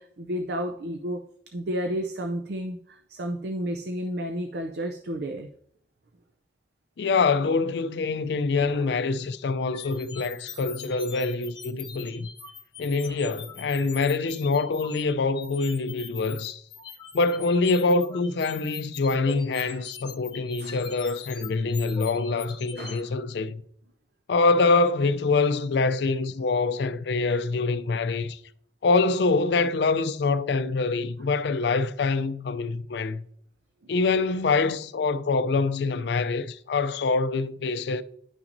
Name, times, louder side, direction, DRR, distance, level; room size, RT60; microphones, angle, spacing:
voice 1, 0.0-5.5 8.5-8.9 13.0-13.1 19.6-19.8 20.6-20.8 22.8-23.1 33.8-33.9, equal, 65° right, 0.5 m, -32 dB
voice 2, 7.0-12.3 12.8-16.6 17.1-23.6 24.3-28.4 28.8-33.2 33.9-38.0, left 3 dB, 75° left, 0.4 m, -25 dB
sound 1, 9.7-23.0, left 6 dB, 25° left, 0.7 m, -42 dB
10.5 x 5.9 x 2.6 m
head